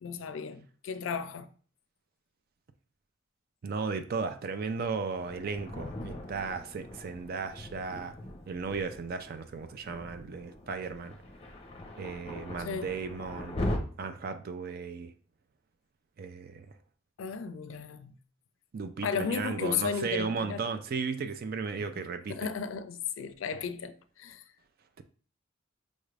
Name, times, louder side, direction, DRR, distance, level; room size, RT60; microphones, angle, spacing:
voice 1, 0.0-1.5 6.0-6.1 12.6-12.9 17.2-18.1 19.0-20.6 22.3-24.4, left 6 dB, 80° left, 0.4 m, -34 dB
voice 2, 3.6-8.1 8.5-11.2 12.0-13.6 14.0-15.1 16.2-16.7 18.7-22.5, right 5 dB, 50° right, 0.4 m, -35 dB
Thunder, 5.1-13.8, left 1 dB, 30° left, 0.6 m, -40 dB
5.2 x 2.4 x 3.2 m
head